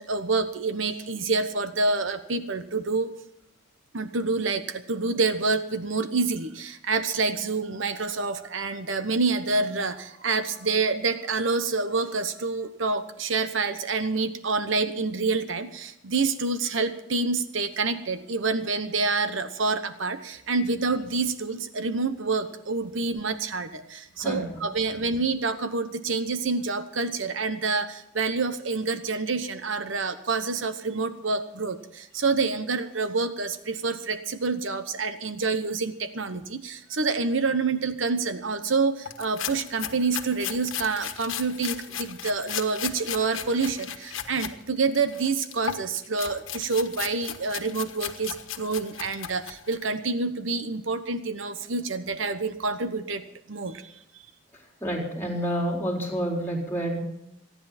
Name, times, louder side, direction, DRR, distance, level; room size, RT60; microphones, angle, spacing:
voice 1, 0.0-3.1 3.9-53.2 53.5-54.0, right 4 dB, 75° right, 10 dB, 1.0 m, -27 dB
voice 2, 24.1-24.6 24.9-25.0 54.8-57.0, equal, 10° left, -2 dB, 4.5 m, -29 dB
Cutting lettus, 39.0-44.5 44.9-49.9, left 9 dB, 85° left, 1.4 m, -36 dB
27.5 x 10.5 x 4.3 m, 0.80 s
head